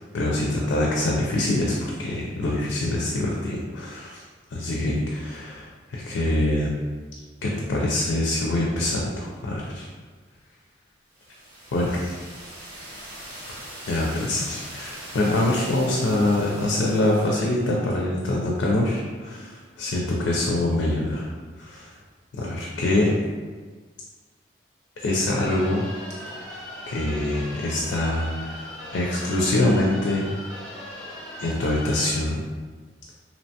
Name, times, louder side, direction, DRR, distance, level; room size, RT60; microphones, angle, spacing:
voice 1, 0.0-4.2 4.5-5.0 5.3-6.7 7.4-9.9 11.7-12.2 13.9-21.3 21.6-21.9 22.4-23.2 25.0-25.9 26.4-26.6 26.9-28.6 28.9-30.3 31.4-32.4, left 1 dB, 80° left, -3 dB, 0.4 m, -24 dB
sound 1, 11.1-17.7, right 1 dB, 45° right, 1.0 m, -41 dB
sound 2, 25.3-32.1, left 1 dB, 5° left, 0.5 m, -39 dB
2.8 x 2.1 x 2.7 m, 1.4 s
head